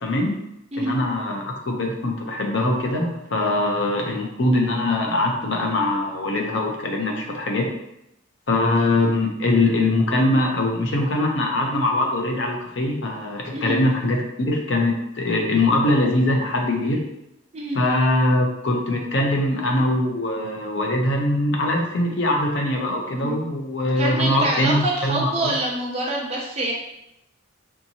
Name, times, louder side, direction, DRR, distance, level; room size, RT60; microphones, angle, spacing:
voice 1, 0.0-0.4 0.8-7.7 8.5-17.0 17.7-25.5, left 1 dB, 60° left, 1 dB, 0.6 m, -22 dB
voice 2, 24.0-26.7, right 2 dB, 30° right, -3 dB, 0.7 m, -26 dB
3.5 x 2.8 x 2.8 m, 0.84 s
head